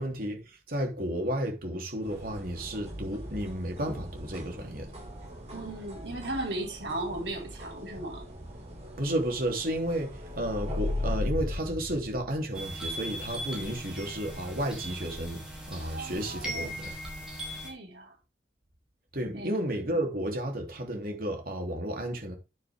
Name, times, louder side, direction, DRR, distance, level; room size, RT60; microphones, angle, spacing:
voice 1, 0.0-4.9 9.0-16.9 19.1-22.3, right 1 dB, 55° right, 3.2 m, -32 dB
sound 1, 2.0-11.2, equal, 40° right, 5.0 m, -43 dB
voice 2, 5.5-8.3 15.8-16.9 17.6-18.2 19.3-19.6, right 2 dB, 80° right, 5.0 m, -37 dB
sound 2, 10.1-12.8, left 2 dB, 25° left, 0.5 m, -32 dB
sound 3, 12.5-17.7, equal, 5° right, 4.9 m, -39 dB
9.3 x 9.3 x 3.6 m
head